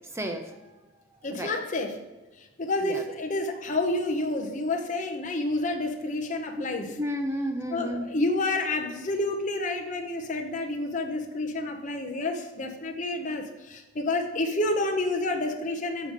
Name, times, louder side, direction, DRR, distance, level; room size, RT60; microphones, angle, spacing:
voice 1, 0.1-0.8 1.3-1.6 2.8-3.0 7.0-8.1, equal, 15° right, 4 dB, 0.6 m, -32 dB
voice 2, 1.2-2.0 2.4-6.9 7.7-16.1, left 2 dB, 35° left, 3 dB, 0.7 m, -29 dB
7.7 x 5.1 x 6.4 m, 1.2 s
head